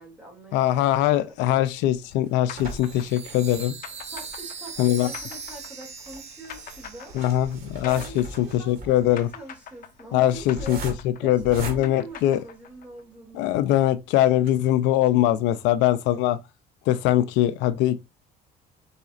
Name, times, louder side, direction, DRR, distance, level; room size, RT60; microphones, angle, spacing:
voice 1, 0.0-1.3 4.1-7.2 7.8-10.9 11.2-13.6, right 2 dB, 5° right, 2.5 m, -43 dB
voice 2, 0.5-3.7 4.8-5.1 7.1-9.3 10.1-10.9 11.2-12.4 13.3-16.4 16.9-18.0, left 13 dB, 85° left, 0.5 m, -22 dB
sound 1, 1.6-12.9 13.5-13.6 13.9-14.0 14.3-14.5, right 2 dB, 55° right, 1.7 m, -41 dB
sound 2, 2.5-8.9 9.2-13.0, left 8 dB, 50° left, 0.8 m, -43 dB
Chime, 2.6-8.2, right 5 dB, 35° right, 1.0 m, -40 dB
4.9 x 4.0 x 2.4 m
cardioid pair, 115°, 18 cm